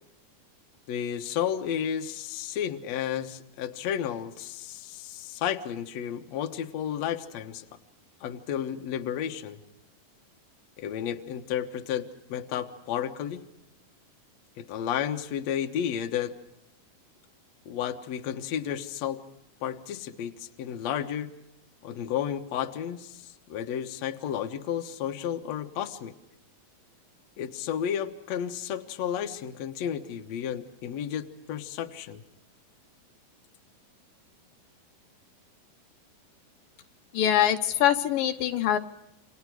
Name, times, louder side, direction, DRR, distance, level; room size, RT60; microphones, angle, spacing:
voice 1, 0.9-7.6 8.2-9.6 10.8-13.4 14.6-16.4 17.7-19.2 19.6-21.3 21.8-26.1 27.4-32.2, left 9 dB, 60° left, 5 dB, 2.2 m, -32 dB
voice 2, 37.1-38.8, left 11 dB, 80° left, 7 dB, 2.8 m, -23 dB
29.0 x 26.5 x 4.8 m, 0.87 s
omnidirectional pair, 4.0 m